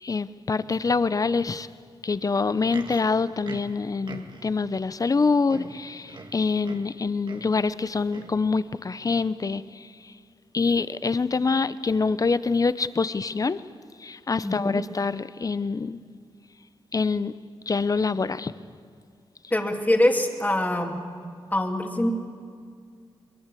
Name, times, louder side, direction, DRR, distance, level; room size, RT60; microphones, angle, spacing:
voice 1, 0.0-1.7 2.0-10.1 10.5-13.6 14.0-16.0 16.9-17.3 17.7-18.5, left 4 dB, 35° left, 0.7 m, -25 dB
Livestock farm animals working animals, 2.5-4.6 5.2-5.3 5.5-7.0 7.2-7.6 8.1-8.4 9.1-9.2, right 3 dB, 50° right, 1.9 m, -42 dB
voice 2, 14.4-14.8 19.5-21.0 21.5-22.1, left 1 dB, 15° left, 2.6 m, -23 dB
22.0 x 22.0 x 8.4 m
cardioid pair, 75°, 10 cm